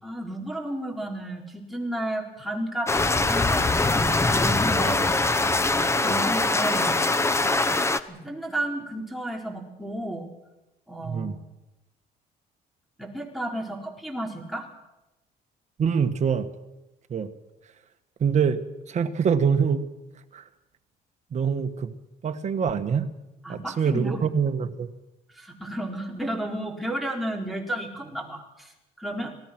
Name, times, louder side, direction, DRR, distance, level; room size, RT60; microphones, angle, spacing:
voice 1, 0.0-5.1 5.7-7.0 7.4-7.8 8.1-10.3 10.9-11.5 13.0-14.7 23.4-24.2 25.3-28.7 29.0-29.3, right 1 dB, ahead, 0 dB, 4.6 m, -32 dB
sound 1, 2.9-8.0, left 2 dB, 15° left, 1.0 m, -22 dB
voice 2, 11.0-11.4 15.8-16.5 17.1-17.3 18.2-19.9 20.3-20.4 21.3-21.9 22.2-23.1 23.5-24.9, right 6 dB, 45° right, 8 dB, 1.7 m, -25 dB
27.0 x 18.5 x 6.2 m, 0.98 s
cardioid pair, 110°, 17 cm